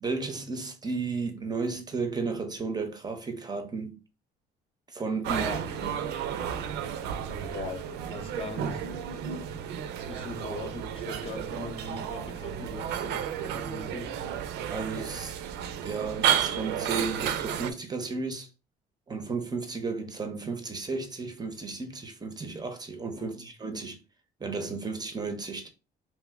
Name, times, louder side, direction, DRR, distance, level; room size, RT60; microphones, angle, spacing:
voice 1, 0.0-4.0 4.9-5.5 5.8-6.0 14.7-15.4 15.8-18.5 19.1-24.0 24.4-25.7, right 4 dB, 25° right, 0.5 m, -33 dB
sound 1, 5.2-17.7, right 9 dB, 85° right, 0.4 m, -32 dB
voice 2, 5.3-5.6 7.3-8.8 10.1-14.1 23.1-23.5, left 2 dB, 35° left, 0.6 m, -40 dB
2.9 x 2.0 x 3.3 m
cardioid pair, 110°, 17 cm